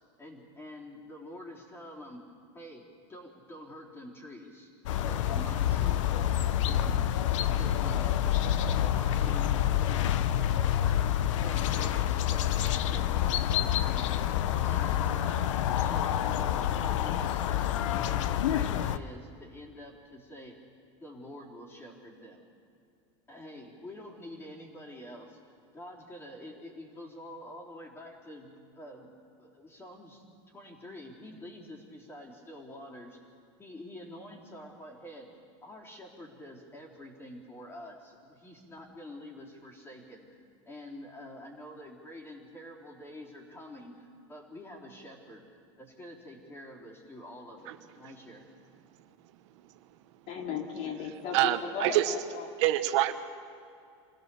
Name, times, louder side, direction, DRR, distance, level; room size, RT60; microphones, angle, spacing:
voice 1, 0.2-2.2 2.5-4.7 5.1-6.2 6.7-10.3 10.7-11.1 11.4-12.6 12.9-14.3 14.6-20.6 21.0-22.4 23.3-25.4 25.7-29.1 29.4-33.3 33.6-35.3 35.6-45.4 45.8-48.5, left 1 dB, 15° left, -2 dB, 3.9 m, -47 dB
sound 1, 4.9-19.0, left 10 dB, 85° left, 0.9 m, -28 dB
voice 2, 50.3-52.5, left 6 dB, 50° left, 3 dB, 2.6 m, -36 dB
voice 3, 51.3-52.1 52.6-53.1, right 14 dB, 70° right, 9 dB, 1.2 m, -25 dB
26.5 x 16.0 x 7.1 m, 2.4 s
supercardioid pair, 135°, 16 cm